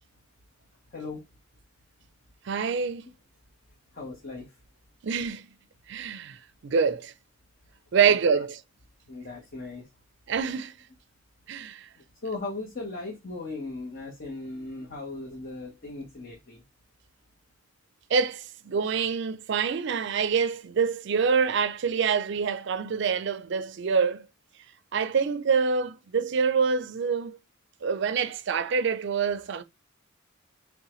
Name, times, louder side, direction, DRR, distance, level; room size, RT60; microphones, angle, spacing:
voice 1, 0.9-1.2 3.9-4.5 8.0-8.4 9.1-9.9 12.0-16.6, left 3 dB, 45° left, 1.0 m, -38 dB
voice 2, 2.5-3.0 5.0-5.5 5.9-7.1 7.9-8.6 10.3-10.7 11.5-11.9 18.1-24.2 24.9-27.4 27.8-29.6, right 6 dB, 65° right, 0.4 m, -26 dB
5.4 x 2.2 x 3.0 m
head